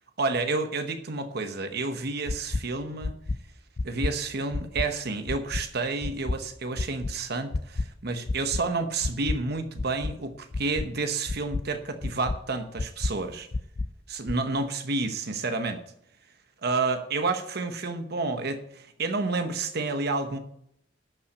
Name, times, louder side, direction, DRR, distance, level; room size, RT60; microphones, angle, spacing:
voice 1, 0.2-3.1 3.8-13.5 14.1-15.8 16.6-20.4, right 3 dB, 55° right, 1.0 m, -30 dB
sound 1, 2.3-2.6 3.0-3.4 3.8-4.1 4.5-4.9 5.3-5.6 6.0-6.4 6.8-7.1 7.5-7.9 8.3-8.6 9.0-9.4 9.8-10.1 10.5-10.9 11.3-11.6 12.0-12.4 12.8-13.1 13.5-13.9 14.3-14.4, left 3 dB, 35° left, 0.4 m, -29 dB
12.0 x 5.8 x 8.0 m
head